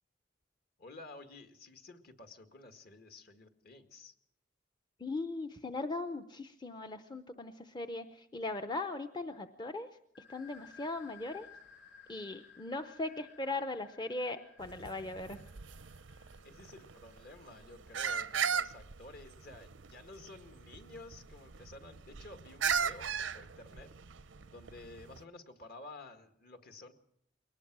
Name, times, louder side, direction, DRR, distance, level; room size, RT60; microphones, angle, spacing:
voice 1, 0.8-4.1 16.4-23.9 24.5-26.9, left 2 dB, 55° left, 7 dB, 2.0 m, -52 dB
voice 2, 5.0-9.9 10.3-11.5 12.1-15.4, left 2 dB, 25° left, 8 dB, 0.7 m, -39 dB
sound 1, 10.1-17.6, left 6 dB, 85° left, 5.8 m, -58 dB
sound 2, 14.6-25.2, right 6 dB, 85° right, 0.7 m, -38 dB
22.5 x 19.0 x 6.1 m, 0.73 s
head